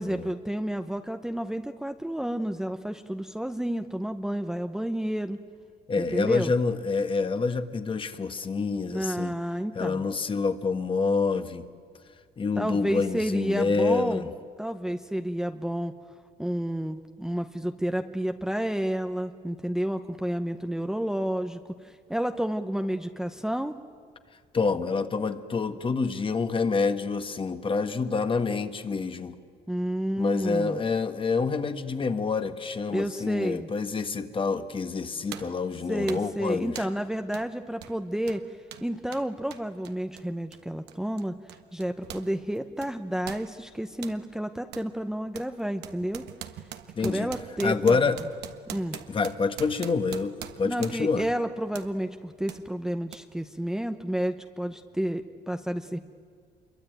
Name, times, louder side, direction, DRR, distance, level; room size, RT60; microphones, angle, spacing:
voice 1, 0.0-5.4 6.0-6.5 8.9-10.0 12.6-14.3 14.6-15.9 16.4-23.7 29.7-30.8 32.9-33.7 35.9-38.4 38.8-41.3 41.7-46.2 47.0-48.0 48.7-49.0 50.7-56.0, right 1 dB, 5° right, 7 dB, 0.8 m, -30 dB
voice 2, 5.9-9.3 9.7-11.7 12.4-14.3 24.5-29.3 30.2-36.9 46.9-47.3 47.6-48.2 48.9-51.3, left 4 dB, 30° left, 9 dB, 1.5 m, -27 dB
sound 1, 34.4-34.6 35.3-35.6 36.1-36.4 36.8-37.0 37.3-37.5 37.8-42.3 42.6-44.2 44.7-44.9 45.3-51.2 51.7-51.9 52.5-52.6 53.1-53.2, right 11 dB, 80° right, 1.5 m, -43 dB
26.5 x 23.0 x 9.2 m, 2.1 s
cardioid pair, 110°, 17 cm